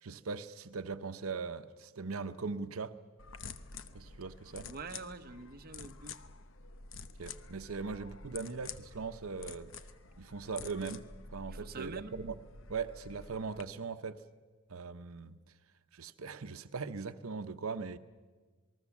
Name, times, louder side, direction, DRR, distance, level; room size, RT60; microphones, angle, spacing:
voice 1, 0.0-2.9 3.9-4.7 7.2-9.7 10.2-12.4 12.7-14.2 14.7-15.4 15.9-18.0, right 4 dB, 85° right, 10 dB, 0.8 m, -40 dB
sound 1, 3.2-13.6, left 4 dB, 65° left, 1.0 m, -49 dB
voice 2, 4.6-6.2 11.5-12.1, right 3 dB, 45° right, 7 dB, 1.1 m, -45 dB
27.5 x 20.5 x 7.2 m, 1.4 s
head